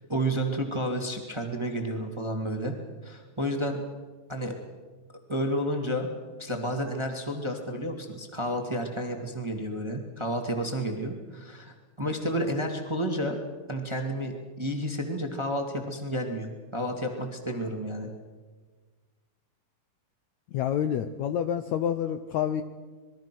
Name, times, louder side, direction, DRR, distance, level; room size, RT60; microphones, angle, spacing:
voice 1, 0.0-2.7 3.0-3.8 4.3-4.6 5.3-6.1 6.4-13.3 13.7-18.1, equal, 10° right, 3 dB, 1.6 m, -31 dB
voice 2, 20.5-22.6, left 9 dB, 75° left, 10 dB, 1.8 m, -28 dB
26.5 x 22.0 x 6.2 m, 1.4 s
omnidirectional pair, 4.0 m